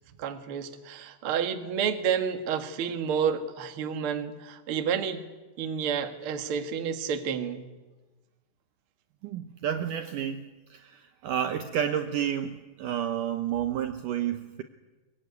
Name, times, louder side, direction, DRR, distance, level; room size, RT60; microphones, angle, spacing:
voice 1, 0.2-5.2 5.6-7.6, right 7 dB, 60° right, 1.4 m, -30 dB
voice 2, 9.2-14.6, right 9 dB, 85° right, 1.8 m, -31 dB
23.0 x 23.0 x 9.6 m
omnidirectional pair, 5.1 m